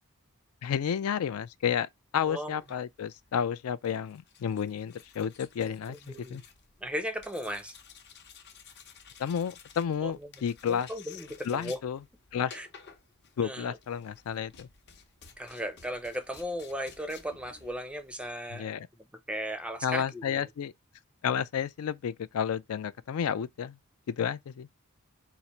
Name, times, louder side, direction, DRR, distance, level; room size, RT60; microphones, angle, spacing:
voice 1, 0.6-6.0 6.3-6.4 9.2-10.9 11.5-12.0 12.3-12.5 13.4-14.7 18.5-18.9 19.8-20.7 21.2-23.8 24.1-24.7, left 8 dB, 80° left, 0.4 m, -31 dB
voice 2, 2.2-2.6 5.9-6.4 6.8-7.7 10.0-11.8 12.5-12.7 13.4-13.8 15.4-20.5, equal, 5° right, 0.4 m, -37 dB
sound 1, 2.5-18.5, left 6 dB, 50° left, 0.7 m, -54 dB
4.1 x 2.4 x 4.3 m
head